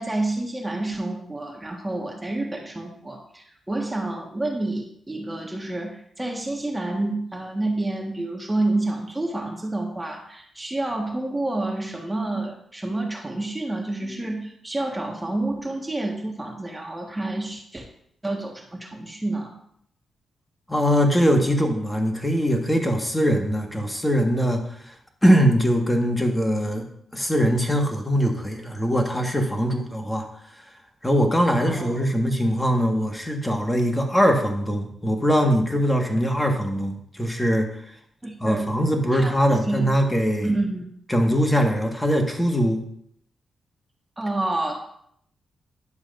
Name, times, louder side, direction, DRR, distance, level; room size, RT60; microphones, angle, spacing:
voice 1, 0.0-17.8 18.2-19.5 31.6-32.0 38.2-38.7 39.1-39.9 40.4-40.9 44.2-44.8, right 2 dB, 20° right, 1 dB, 1.5 m, -29 dB
voice 2, 20.7-24.9 25.2-26.8 27.1-30.3 31.0-37.7 38.4-40.5 41.1-42.8, equal, 10° left, 3 dB, 1.6 m, -22 dB
11.0 x 7.1 x 2.6 m, 0.69 s
supercardioid pair, 55°, 0 cm